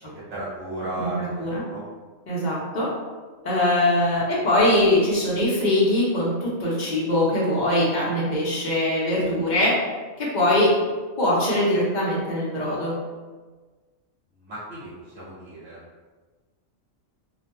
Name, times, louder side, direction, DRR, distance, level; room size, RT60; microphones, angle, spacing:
voice 1, 0.0-1.8 14.4-14.9 15.1-15.8, right 1 dB, 45° right, -10 dB, 1.2 m, -34 dB
voice 2, 2.3-2.9 3.4-9.7 10.2-10.7 11.2-12.9, left 1 dB, 50° left, -6 dB, 0.5 m, -22 dB
2.5 x 2.1 x 2.9 m, 1.4 s
omnidirectional pair, 1.4 m